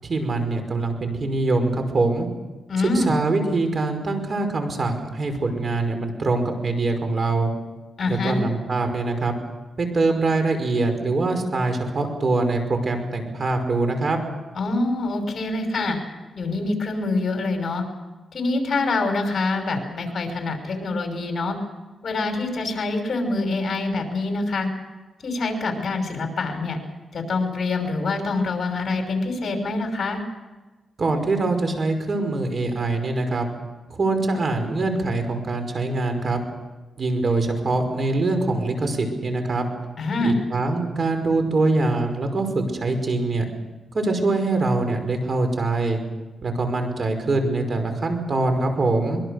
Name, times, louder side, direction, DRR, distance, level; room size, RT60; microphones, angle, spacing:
voice 1, 0.0-2.3 2.9-7.5 8.1-9.3 9.8-14.2 31.0-33.5 33.9-36.4 37.0-39.7 40.2-43.5 43.9-46.0 46.4-49.2, right 2 dB, 45° right, 6 dB, 5.4 m, -23 dB
voice 2, 2.7-3.1 8.0-8.4 14.5-16.0 16.4-17.8 18.3-21.6 22.0-24.7 25.2-26.8 27.1-30.2 40.0-40.4, left 3 dB, 55° left, 4 dB, 6.0 m, -25 dB
24.5 x 22.5 x 6.7 m, 1.2 s
cardioid pair, 90°, 0 cm